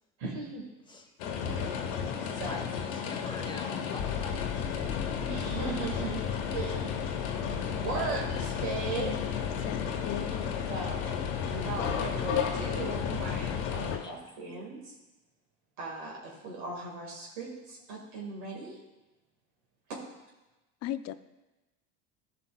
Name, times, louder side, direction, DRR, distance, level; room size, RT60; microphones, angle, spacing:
voice 1, 0.2-0.7 2.2-2.6 5.2-6.2 6.5-7.2 7.5-9.1 10.7-11.1 11.5-14.9 15.8-18.8 19.9-20.0, right 4 dB, 70° right, -2 dB, 1.9 m, -38 dB
sound 1, 1.2-14.0, left 7 dB, 80° left, 1.2 m, -32 dB
voice 2, 2.4-5.0 13.9-14.1, left 3 dB, 10° left, 4 dB, 1.1 m, -45 dB
voice 3, 9.0-10.5 13.9-14.1 20.8-21.1, left 12 dB, 40° left, 13 dB, 0.5 m, -38 dB
14.0 x 5.6 x 2.3 m, 1.1 s
supercardioid pair, 90°, 39 cm